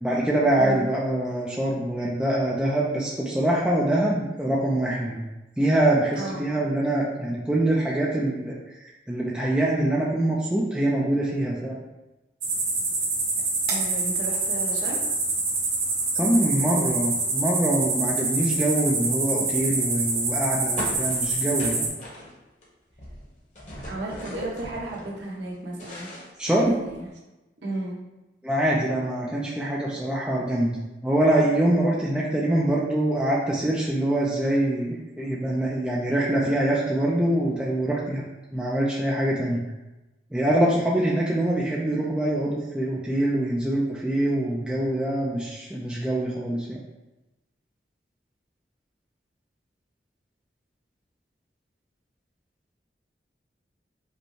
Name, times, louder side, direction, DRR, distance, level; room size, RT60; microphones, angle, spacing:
voice 1, 0.0-5.2 5.6-8.5 9.1-11.8 16.1-21.9 26.4-26.8 28.4-38.2 38.5-39.6 40.3-46.8, right 1 dB, 5° right, -5 dB, 0.4 m, -24 dB
sound 1, 12.4-21.9, right 3 dB, 55° right, 1.4 m, -26 dB
voice 2, 13.7-15.0 23.8-26.1 26.6-27.1 27.6-28.0, right 1 dB, 90° right, -3 dB, 1.3 m, -34 dB
sound 2, 20.8-22.6 22.9-25.1 25.5-27.0, equal, 45° left, 1.1 m, -39 dB
5.2 x 2.2 x 4.6 m, 1.0 s
head